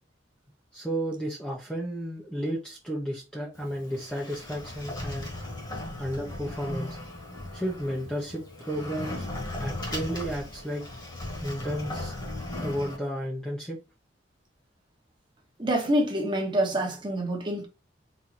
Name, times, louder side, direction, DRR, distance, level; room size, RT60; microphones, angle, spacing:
voice 1, 0.7-5.3 6.0-7.0 7.5-9.3 9.6-10.8 11.4-12.1 12.6-13.8, equal, 5° left, 1.0 m, -33 dB
Sliding door, 3.5-13.0, left 1 dB, 25° left, 1.8 m, -37 dB
voice 2, 15.6-17.7, right 1 dB, 25° right, 1.3 m, -26 dB
4.3 x 3.6 x 3.0 m
head